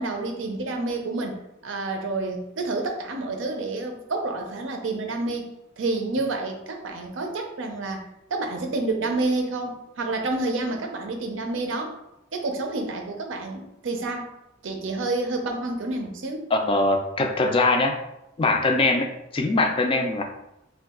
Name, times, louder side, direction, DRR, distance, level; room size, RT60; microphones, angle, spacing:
voice 1, 0.0-5.5 5.8-12.0 12.3-14.3 14.6-16.5, right 2 dB, 70° right, 4 dB, 0.5 m, -29 dB
voice 2, 16.5-18.0 18.4-20.2, left 2 dB, 30° left, 5 dB, 0.3 m, -22 dB
2.6 x 2.3 x 3.6 m, 0.87 s
head